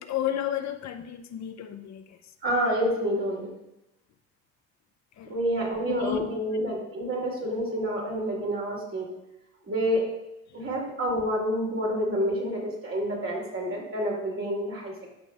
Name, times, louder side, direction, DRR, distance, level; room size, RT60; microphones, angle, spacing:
voice 1, 0.0-2.2 5.2-5.4 5.9-6.4 10.5-10.7, left 11 dB, 65° left, 0.6 m, -32 dB
voice 2, 2.4-3.5 5.3-9.1 9.7-10.1 10.5-15.1, equal, 45° right, 2.7 m, -28 dB
14.0 x 5.2 x 2.3 m
cardioid pair, 90°, 30 cm